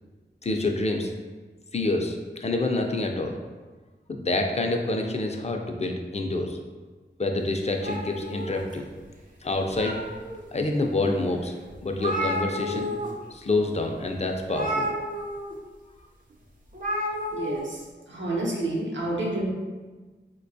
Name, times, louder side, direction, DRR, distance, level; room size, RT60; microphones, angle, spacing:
voice 1, 0.4-1.1 1.7-2.2 2.4-3.3 4.1-6.6 7.2-8.9 9.4-10.0 10.5-11.5 11.8-12.9 13.3-14.9, left 2 dB, 35° left, 3 dB, 0.4 m, -27 dB
sound 1, 7.8-9.0 9.5-10.4 11.0-11.1 11.4-11.5 11.7-13.1 13.4-13.6 14.5-15.5 16.7-17.6, equal, 45° right, 0.6 m, -31 dB
voice 2, 17.3-17.8 18.1-19.5, right 2 dB, 85° right, -3 dB, 0.7 m, -29 dB
4.6 x 2.2 x 2.5 m, 1.3 s
wide cardioid pair, 70°, 19 cm